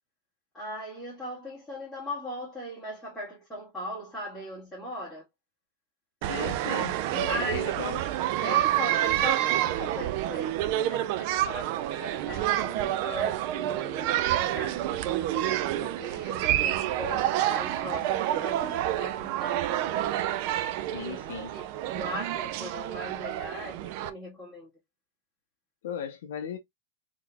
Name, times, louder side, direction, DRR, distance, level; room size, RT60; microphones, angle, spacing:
voice 1, 0.5-5.2 7.3-7.7 8.4-10.6 10.9-20.0 21.0-21.2 21.5-21.6 21.9-24.7, equal, 10° left, 1.7 m, -39 dB
sound 1, 6.2-24.1, right 13 dB, 45° right, 0.4 m, -28 dB
voice 2, 6.3-8.1 20.9-21.5 25.8-26.6, left 8 dB, 75° left, 0.7 m, -37 dB
3.7 x 2.9 x 2.3 m
supercardioid pair, 160°, 0 cm